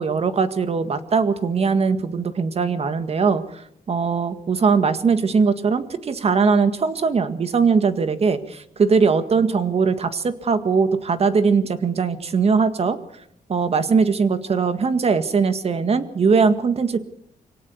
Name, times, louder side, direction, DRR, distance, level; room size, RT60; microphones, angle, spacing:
voice 1, 0.0-3.4 3.9-13.0 13.5-17.0, right 5 dB, 45° right, 10 dB, 1.9 m, -20 dB
25.0 x 17.5 x 7.2 m, 0.75 s
cardioid pair, 105°, 15 cm